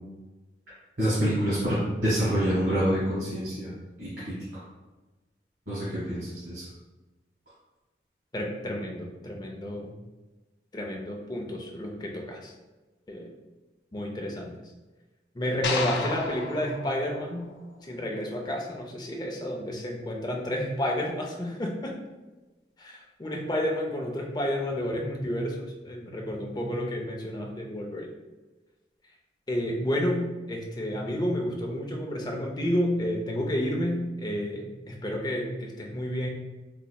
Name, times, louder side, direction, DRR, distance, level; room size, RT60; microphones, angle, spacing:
voice 1, 1.0-3.7 4.0-4.6 5.7-6.6, equal, 75° right, -11 dB, 1.4 m, -27 dB
voice 2, 8.3-9.9 10.7-12.5 13.1-13.3 13.9-14.5 15.3-17.5 17.8-22.0 22.8-28.1 29.5-36.3, equal, 25° left, 0 dB, 0.4 m, -31 dB
sound 1, 15.6-18.0, left 3 dB, 80° left, 0.5 m, -33 dB
4.1 x 3.0 x 2.2 m, 1.2 s
head